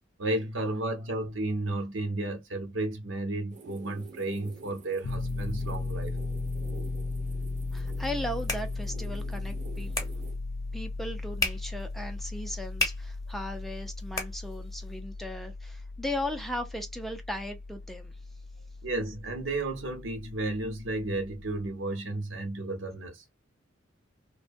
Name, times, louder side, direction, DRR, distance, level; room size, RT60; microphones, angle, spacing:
voice 1, 0.2-6.2 18.8-23.2, right 2 dB, 70° right, 0.8 m, -33 dB
sound 1, 3.5-10.4, right 4 dB, 40° right, 0.6 m, -50 dB
Piano, 5.0-21.7, left 3 dB, 80° left, 0.4 m, -37 dB
voice 2, 7.7-9.9 10.7-18.1, left 1 dB, ahead, 0.4 m, -37 dB
sound 2, 7.9-15.0, left 3 dB, 20° left, 0.8 m, -38 dB
2.6 x 2.2 x 2.5 m
head